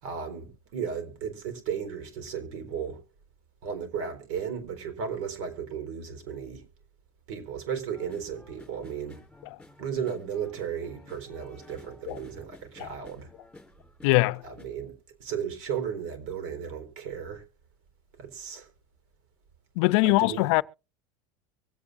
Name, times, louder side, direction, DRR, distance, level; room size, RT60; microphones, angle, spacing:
voice 1, 0.0-3.0 3.6-6.6 7.3-9.2 9.8-13.3 14.4-14.9 15.2-17.5 18.2-18.7 20.0-20.5, right 7 dB, 75° right, 4.3 m, -35 dB
sound 1, 7.9-14.6, left 2 dB, 5° left, 3.6 m, -53 dB
voice 2, 14.0-14.4 19.8-20.6, left 23 dB, 75° left, 0.5 m, -22 dB
24.0 x 8.6 x 2.6 m
supercardioid pair, 115°, 16 cm